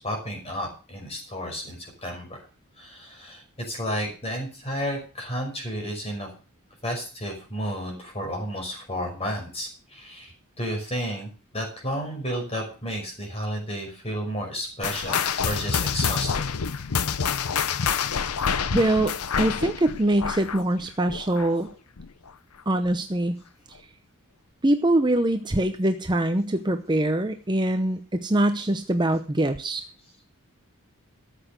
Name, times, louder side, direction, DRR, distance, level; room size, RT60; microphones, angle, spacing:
voice 1, 0.0-2.5 2.8-6.3 6.8-16.5, equal, 25° left, 2 dB, 5.5 m, -32 dB
sound 1, 14.8-21.7 22.0-22.3 22.9-23.0 23.8-23.9, left 6 dB, 80° left, 0.7 m, -27 dB
voice 2, 18.7-21.7 22.7-23.4 24.6-29.8, right 1 dB, 20° right, 7 dB, 0.8 m, -23 dB
13.5 x 8.2 x 6.5 m, 0.37 s
head